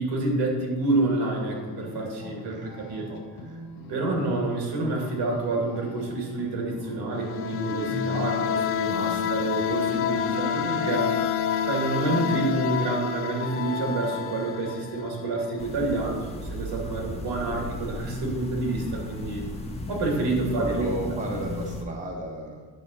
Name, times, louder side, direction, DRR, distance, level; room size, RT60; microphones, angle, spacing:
voice 1, 0.0-3.1 3.9-11.1 11.6-19.4 19.9-21.1, right 2 dB, 75° right, -1 dB, 2.6 m, -28 dB
sound 1, 0.9-8.3, left 2 dB, 55° left, 1.4 m, -40 dB
voice 2, 2.2-2.8 3.1-3.6 9.2-9.5 10.5-10.6 20.5-22.7, right 1 dB, 20° right, -1 dB, 1.1 m, -35 dB
sound 2, 7.1-15.7, left 8 dB, 35° left, 0.4 m, -28 dB
sound 3, 15.6-21.8, left 1 dB, 15° left, 1.0 m, -36 dB
9.4 x 6.8 x 4.1 m, 1.4 s
cardioid pair, 150°, 41 cm